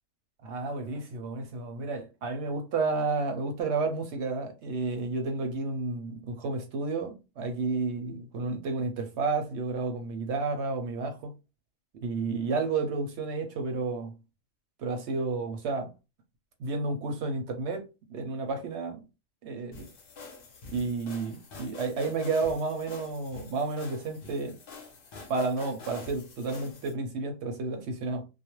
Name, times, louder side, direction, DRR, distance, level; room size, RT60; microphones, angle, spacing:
voice 1, 0.4-11.3 12.0-14.2 14.8-15.9 16.6-19.0 19.4-19.9 20.7-24.6 25.3-28.2, right 3 dB, 65° right, 0.8 m, -31 dB
sound 1, 19.7-26.9, left 4 dB, 55° left, 0.7 m, -46 dB
2.3 x 2.1 x 2.9 m
omnidirectional pair, 1.4 m